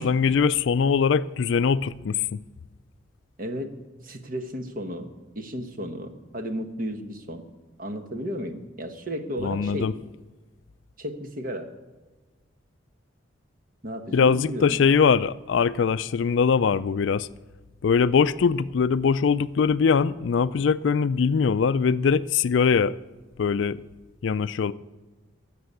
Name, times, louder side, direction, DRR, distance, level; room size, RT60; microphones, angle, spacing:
voice 1, 0.0-2.4 9.4-9.9 14.1-17.3 17.8-23.0 23.4-23.8 24.2-24.7, left 6 dB, 65° left, 0.4 m, -22 dB
voice 2, 3.4-3.8 4.0-7.4 7.8-10.0 11.0-11.7 13.8-14.9, equal, 45° right, 1.1 m, -34 dB
14.0 x 6.9 x 8.2 m
head